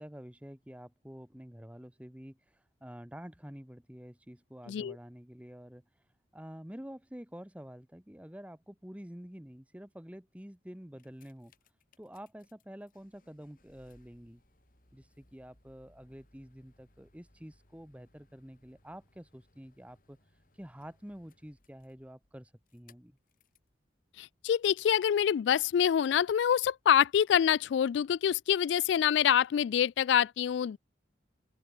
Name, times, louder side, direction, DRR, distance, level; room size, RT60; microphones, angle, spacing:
voice 1, 0.0-5.8 6.3-11.5 12.0-14.4 14.9-20.2 20.6-23.2, equal, 5° right, 1.0 m, -48 dB
sound 1, 10.8-23.7 24.5-24.6, left 2 dB, 45° left, 4.6 m, -67 dB
voice 2, 24.2-30.8, left 9 dB, 80° left, 0.3 m, -26 dB
open air
head